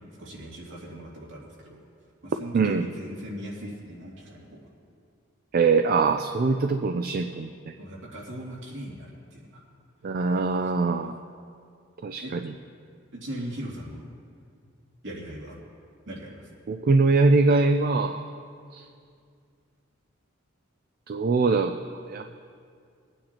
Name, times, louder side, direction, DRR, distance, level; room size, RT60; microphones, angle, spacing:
voice 1, 0.2-1.8 2.2-4.6 7.8-9.6 10.6-10.9 12.2-12.3 13.2-14.1 15.0-15.6 16.1-16.5, equal, 65° right, -4 dB, 2.6 m, -39 dB
voice 2, 5.5-7.5 10.0-11.2 12.0-12.4 16.7-18.2 18.7-18.8 21.1-21.8 22.1-22.2, right 3 dB, 45° right, 7 dB, 0.4 m, -22 dB
23.0 x 9.1 x 2.9 m, 2.3 s
head